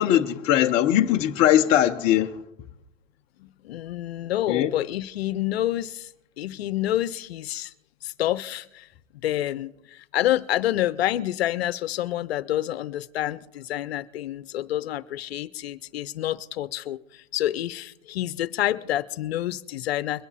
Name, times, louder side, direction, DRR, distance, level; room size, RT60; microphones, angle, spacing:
voice 1, 0.0-2.4 4.5-4.7, left 12 dB, 15° left, 0.5 m, -20 dB
voice 2, 3.4-6.1 6.4-7.7 8.0-8.9 9.2-20.3, left 13 dB, 55° left, 0.7 m, -28 dB
22.5 x 9.8 x 4.2 m
hypercardioid pair, 140°, 38 cm